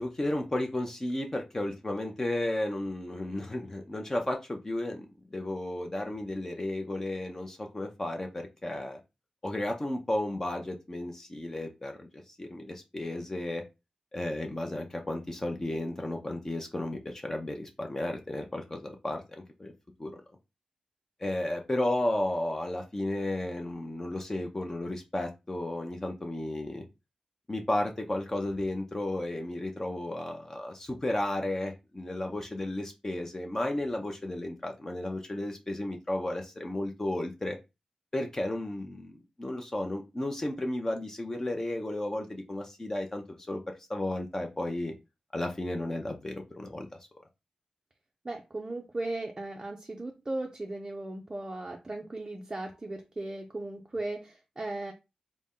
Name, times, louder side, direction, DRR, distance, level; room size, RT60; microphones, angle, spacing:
voice 1, 0.0-9.0 9.4-13.6 14.1-19.7 20.0-20.2 21.2-26.8 27.5-37.6 38.1-43.6 43.9-44.9 45.3-46.9, left 1 dB, 20° left, 3 dB, 0.5 m, -33 dB
voice 2, 48.2-54.9, right 2 dB, 25° right, 1 dB, 0.5 m, -37 dB
4.0 x 2.1 x 3.6 m, 0.25 s
wide cardioid pair, 125°, 2 cm